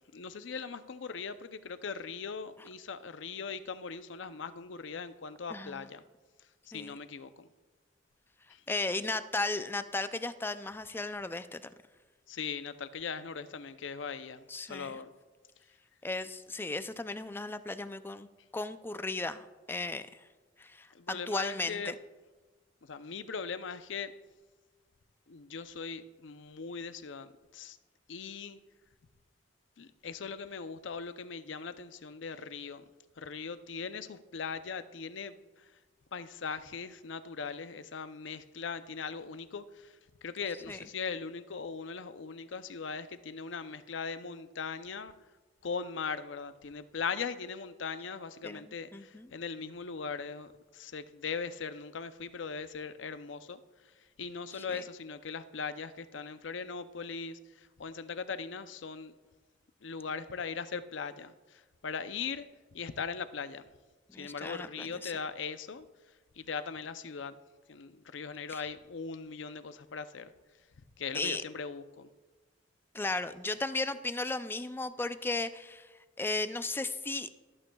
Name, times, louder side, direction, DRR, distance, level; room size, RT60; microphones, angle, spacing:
voice 1, 0.1-6.0 6.7-7.5 8.5-8.6 12.3-15.1 20.9-22.0 22.8-24.1 25.3-27.8 28.1-28.6 29.8-32.8 33.2-35.7 36.1-39.9 40.2-45.1 45.6-53.6 54.2-59.1 59.8-63.7 64.2-65.9 66.4-67.4 67.7-70.3 71.0-72.1, left 5 dB, 85° left, 12 dB, 0.6 m, -40 dB
voice 2, 5.5-5.9 6.7-7.0 8.7-11.7 14.5-14.9 16.0-18.3 18.5-20.1 20.6-22.0 40.7-40.8 48.4-48.7 48.9-49.3 54.5-54.8 64.1-65.1 68.5-68.7 71.1-71.4 72.9-75.9 76.2-77.3, left 2 dB, 10° left, 11 dB, 0.4 m, -35 dB
25.0 x 8.8 x 2.3 m, 1.3 s
head